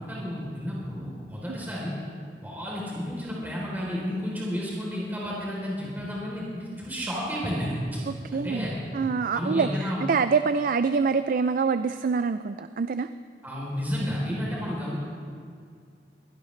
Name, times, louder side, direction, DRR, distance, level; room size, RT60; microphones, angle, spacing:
voice 1, 0.0-1.9 2.4-8.0 8.3-8.7 9.3-10.0 13.4-15.0, equal, 10° right, -5 dB, 3.4 m, -31 dB
voice 2, 8.1-8.7 8.9-13.1, right 5 dB, 50° right, 11 dB, 0.4 m, -25 dB
22.5 x 17.0 x 3.2 m, 2.2 s
head